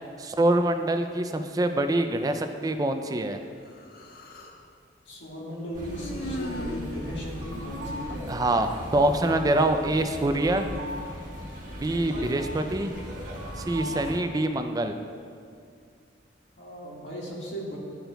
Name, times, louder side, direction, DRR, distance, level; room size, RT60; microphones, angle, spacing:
voice 1, 0.2-3.4 8.3-10.7 11.8-13.0 13.6-14.9, right 1 dB, 20° right, 7 dB, 0.3 m, -25 dB
Human voice, 3.7-4.6 5.8-8.5, left 1 dB, 55° left, 0.5 m, -39 dB
voice 2, 5.0-8.4 8.7-9.3 12.0-12.5 16.6-17.8, equal, 85° left, -5 dB, 1.6 m, -37 dB
sound 1, 5.7-14.2, equal, 50° right, 1.4 m, -38 dB
12.0 x 4.5 x 2.2 m, 2.3 s
head